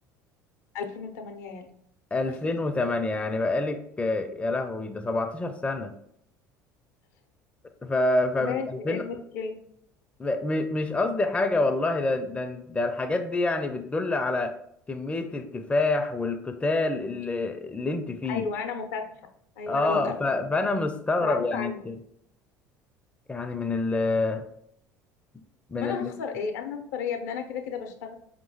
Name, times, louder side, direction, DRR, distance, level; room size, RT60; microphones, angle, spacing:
voice 1, 0.7-1.7 2.3-2.4 8.4-9.6 18.3-19.0 19.6-20.1 21.2-21.8 25.8-28.1, left 5 dB, 70° left, 6 dB, 0.5 m, -33 dB
voice 2, 2.1-5.9 7.8-9.2 10.2-14.5 14.9-18.5 19.7-22.0 23.3-24.4 25.7-26.1, left 2 dB, 15° left, 7 dB, 0.4 m, -27 dB
4.7 x 2.9 x 2.7 m, 0.72 s
hypercardioid pair, 65°, 10 cm